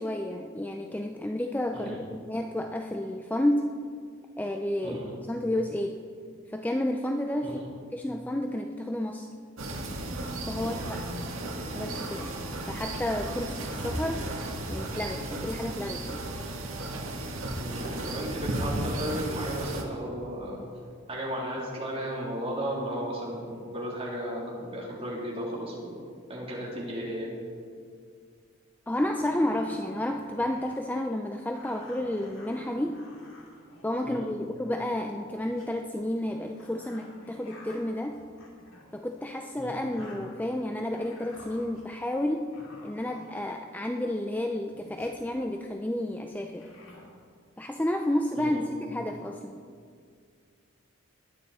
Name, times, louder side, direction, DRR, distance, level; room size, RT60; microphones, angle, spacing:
voice 1, 0.0-3.8 4.4-5.0 5.3-6.0 6.5-7.6 7.9-9.3 10.5-11.1 11.7-12.3 12.7-14.3 14.7-16.2 28.9-33.1 33.8-38.2 38.9-46.7 47.6-49.6, left 1 dB, 10° left, 4 dB, 0.5 m, -31 dB
voice 2, 4.8-5.1 7.4-7.7 10.6-10.9 17.6-20.6 21.1-26.0 26.3-27.3 34.0-34.3 39.6-40.0 48.3-48.6, equal, 30° right, -4 dB, 3.3 m, -35 dB
sound 1, 9.6-19.8, right 1 dB, 85° right, 1.8 m, -34 dB
sound 2, 28.5-28.6 29.0-30.9 31.5-34.6 35.2-35.7 36.3-39.0 39.6-40.6 40.9-42.1 42.5-43.8 44.5-45.2 46.5-47.1, left 1 dB, 75° left, 2.9 m, -52 dB
21.0 x 9.1 x 4.2 m, 2.1 s
head